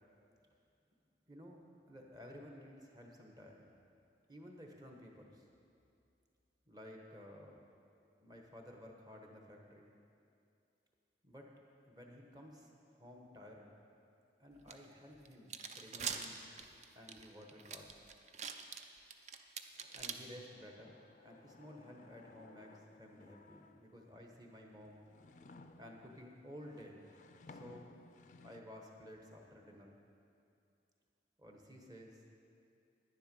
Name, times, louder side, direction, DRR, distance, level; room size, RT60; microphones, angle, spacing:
voice 1, 1.3-3.7 4.3-5.4 6.7-7.6 8.2-9.9 11.2-11.5 11.8-13.7 14.4-16.4 16.9-18.0 19.9-20.9 21.2-25.0 25.8-27.0 27.5-27.9 28.4-29.9 31.4-32.2, equal, 20° right, 1 dB, 1.1 m, -54 dB
sound 1, 14.7-14.8 15.3-20.1, right 6 dB, 40° right, 0.5 m, -43 dB
sound 2, 19.8-24.1 24.7-28.6, left 3 dB, 45° left, 0.4 m, -60 dB
10.5 x 10.5 x 5.4 m, 2.5 s
head